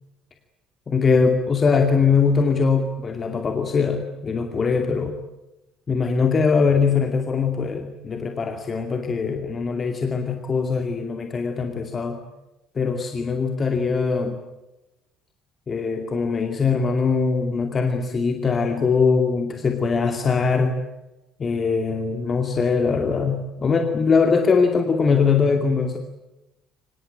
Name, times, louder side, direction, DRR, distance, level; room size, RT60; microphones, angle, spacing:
voice 1, 0.9-5.2 5.9-12.2 12.8-14.4 15.7-20.7 21.4-26.0, left 5 dB, 30° left, 5 dB, 2.4 m, -21 dB
25.0 x 20.5 x 9.0 m, 0.97 s
figure-of-eight pair, 55°, 0 cm